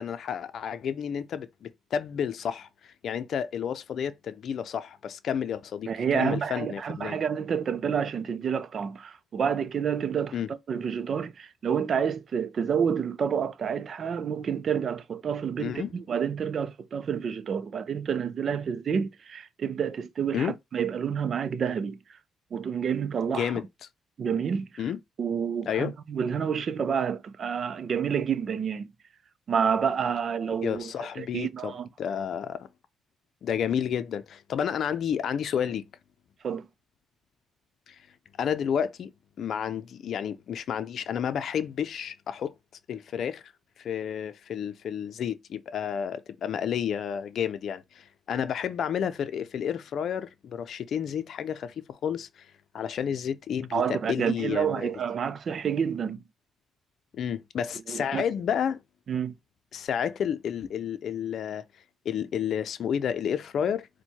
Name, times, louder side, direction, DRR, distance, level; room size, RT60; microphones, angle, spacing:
voice 1, 0.0-7.2 10.3-10.5 15.6-15.9 20.3-20.5 23.3-23.6 24.8-25.0 25.7-25.9 30.6-32.7 33.4-35.8 37.9-38.0 38.4-39.1 39.4-42.5 42.9-43.4 43.8-52.5 52.7-54.9 57.2-58.8 59.7-61.6 62.0-63.9, left 8 dB, 65° left, 0.5 m, -31 dB
voice 2, 5.9-22.0 22.5-23.5 24.2-24.8 25.2-28.9 29.5-30.9 31.2-31.9 36.4-36.7 53.7-56.2 57.9-58.2 59.1-59.3, right 7 dB, 50° right, 0.5 m, -29 dB
4.2 x 2.2 x 4.5 m
cardioid pair, 90°, 0 cm